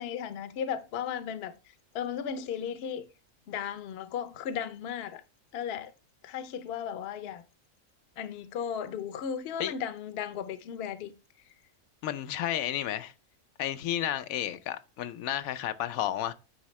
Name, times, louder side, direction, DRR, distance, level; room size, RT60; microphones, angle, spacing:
voice 1, 0.0-1.5 1.9-3.0 3.5-5.2 5.5-5.9 6.2-7.4 8.2-11.1, left 8 dB, 60° left, 0.8 m, -35 dB
voice 2, 12.0-13.1 13.6-16.3, left 11 dB, 90° left, 1.0 m, -32 dB
9.0 x 3.6 x 3.1 m
omnidirectional pair, 1.4 m